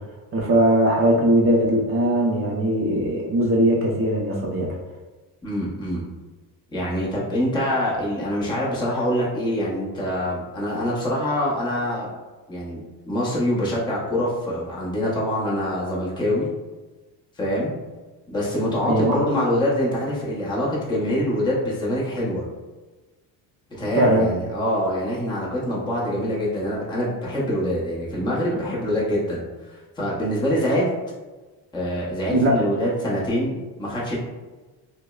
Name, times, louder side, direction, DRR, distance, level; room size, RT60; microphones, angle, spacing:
voice 1, 0.3-4.7 18.9-19.2 24.0-24.3 32.3-32.6, right 1 dB, 30° right, -1 dB, 0.5 m, -20 dB
voice 2, 5.4-6.0 6.7-12.1 12.5-16.5 17.4-17.7 18.3-22.5 23.8-30.9 31.7-34.2, equal, 10° left, -6 dB, 0.7 m, -25 dB
5.2 x 2.0 x 2.3 m, 1.2 s
cardioid pair, 145°, 44 cm